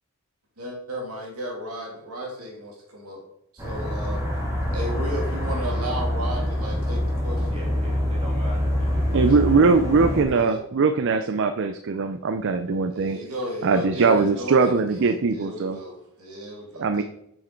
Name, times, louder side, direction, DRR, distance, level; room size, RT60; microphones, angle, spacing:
voice 1, 0.6-3.2 3.5-4.2 4.7-7.6 9.1-9.4 10.3-10.6 12.9-17.0, right 1 dB, 85° right, -1 dB, 2.5 m, -34 dB
sound 1, 3.6-10.2, left 1 dB, 15° right, 2.4 m, -25 dB
voice 2, 7.5-9.6, equal, 30° right, -4 dB, 3.4 m, -40 dB
voice 3, 9.1-13.2 13.6-15.8 16.8-17.0, right 4 dB, 55° right, 9 dB, 0.5 m, -21 dB
7.3 x 6.3 x 4.5 m, 0.77 s
head